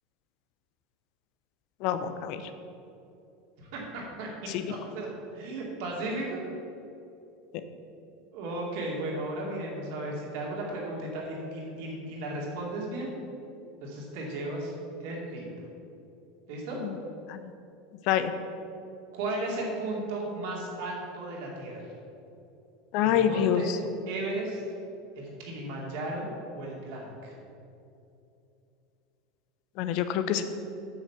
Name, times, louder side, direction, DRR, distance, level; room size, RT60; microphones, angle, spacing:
voice 1, 1.8-2.4 4.5-4.6 16.8-16.9 17.3-17.4 18.1-18.3 22.9-23.6 29.8-30.4, left 10 dB, 55° left, 10 dB, 0.7 m, -26 dB
voice 2, 3.6-6.4 8.3-13.1 13.8-14.7 15.0-15.6 16.5-16.8 19.1-21.9 23.0-23.7 24.1-24.6 25.2-27.3, right 2 dB, 60° right, -2 dB, 2.6 m, -35 dB
8.2 x 6.5 x 6.9 m, 2.8 s
figure-of-eight pair, 80°, 0 cm